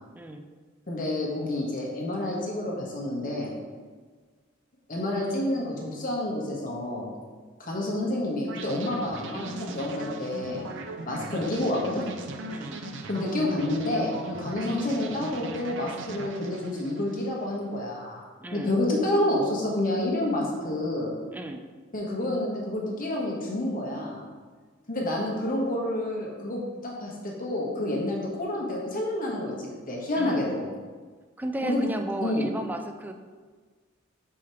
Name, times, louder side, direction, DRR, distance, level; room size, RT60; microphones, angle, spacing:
voice 1, 0.9-3.5 4.9-7.1 7.6-10.6 11.1-12.0 13.1-18.2 18.5-21.1 21.9-24.2 24.9-30.6 31.6-31.8 32.2-32.5, left 1 dB, 45° left, -3 dB, 1.4 m, -29 dB
sound 1, 8.5-17.5, right 2 dB, 65° right, 0.6 m, -39 dB
voice 2, 12.5-12.8 18.4-18.7 21.3-21.6 30.1-30.5 31.4-33.1, right 1 dB, 10° right, 5 dB, 0.4 m, -34 dB
5.0 x 4.8 x 4.9 m, 1.5 s
head